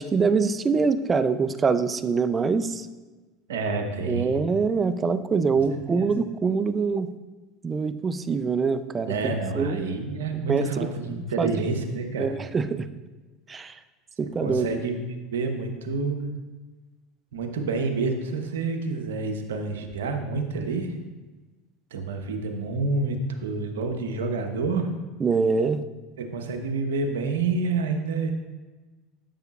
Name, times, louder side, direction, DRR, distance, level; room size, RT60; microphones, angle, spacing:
voice 1, 0.0-2.9 4.0-7.1 7.6-9.9 10.5-10.9 11.1-11.6 12.2-12.9 13.5-13.8 14.2-14.7 25.2-25.8, right 5 dB, 25° right, 12 dB, 0.6 m, -24 dB
voice 2, 3.5-4.4 5.7-6.1 9.0-12.3 14.4-15.0 15.3-16.2 17.3-21.0 21.9-24.9 26.2-28.3, right 3 dB, 85° right, 5 dB, 1.0 m, -28 dB
12.5 x 6.5 x 2.5 m, 1.2 s
hypercardioid pair, 85°, 0 cm